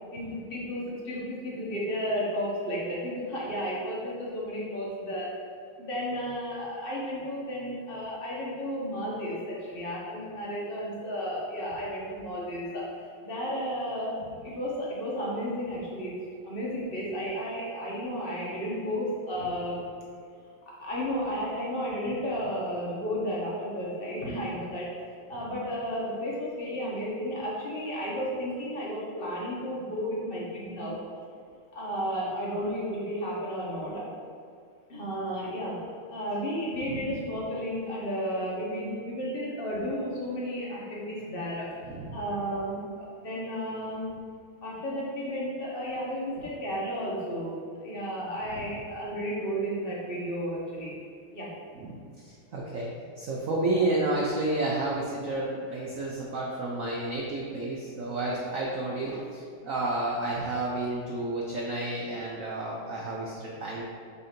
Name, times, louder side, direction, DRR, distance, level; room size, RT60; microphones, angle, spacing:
voice 1, 0.1-5.3 5.8-14.2 14.4-16.2 16.4-19.9 20.8-24.9 25.3-31.0 31.7-34.0 34.9-41.7 42.1-44.1 44.6-50.9 51.3-51.5, equal, 35° left, -5 dB, 1.1 m, -33 dB
voice 2, 41.9-42.2 48.5-48.6 51.7-52.9 53.2-63.8, right 2 dB, 90° right, -3 dB, 0.7 m, -31 dB
6.6 x 2.8 x 5.1 m, 2.2 s
omnidirectional pair, 2.3 m